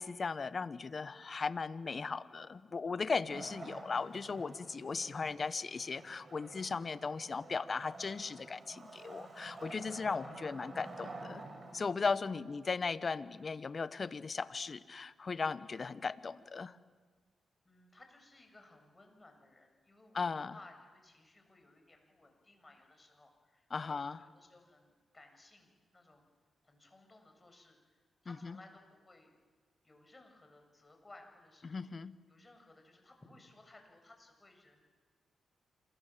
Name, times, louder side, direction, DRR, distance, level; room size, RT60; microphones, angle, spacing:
voice 1, 0.0-11.4 11.7-16.8 20.1-20.5 23.7-24.2 28.3-28.6 31.6-32.1, left 4 dB, 50° left, 15 dB, 1.2 m, -37 dB
Wood, 3.3-12.2, right 2 dB, 45° right, 6.3 m, -50 dB
voice 2, 17.6-26.2 26.6-27.8 28.2-29.3 29.8-31.8 32.3-34.8, left 2 dB, 30° left, 4 dB, 7.7 m, -60 dB
27.5 x 23.5 x 7.7 m, 1.4 s
supercardioid pair, 50°, 0 cm